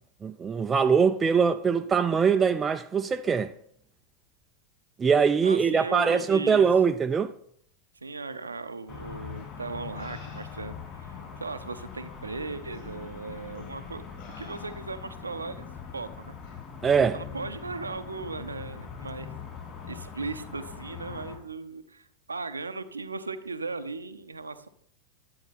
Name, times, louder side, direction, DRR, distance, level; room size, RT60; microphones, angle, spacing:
voice 1, 0.2-3.5 5.0-7.3 16.8-17.2, right 6 dB, 20° right, 0.4 m, -22 dB
voice 2, 5.4-6.6 8.0-11.1 11.4-14.0 14.4-16.4 17.1-19.4 19.9-24.7, right 3 dB, 75° right, 0.7 m, -37 dB
sound 1, 8.9-21.4, left 6 dB, 30° left, 3.8 m, -42 dB
sound 2, 9.3-9.4 10.0-10.9 11.8-11.9 12.7-12.9 13.5-13.8 14.2-15.1 16.4-16.6, left 4 dB, 55° left, 3.4 m, -50 dB
11.5 x 8.8 x 4.2 m
figure-of-eight pair, 90°, 0 cm